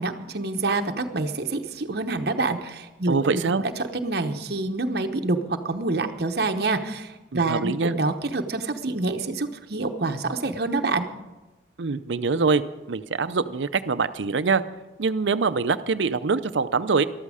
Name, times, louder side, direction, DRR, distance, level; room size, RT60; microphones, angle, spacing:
voice 1, 0.0-5.4 5.6-11.1, right 3 dB, 55° right, 5 dB, 0.9 m, -27 dB
voice 2, 3.1-3.6 7.3-8.0 11.8-12.6 12.9-14.6 15.0-17.1, right 4 dB, 75° right, 13 dB, 0.6 m, -24 dB
13.5 x 12.5 x 4.9 m, 1.1 s
head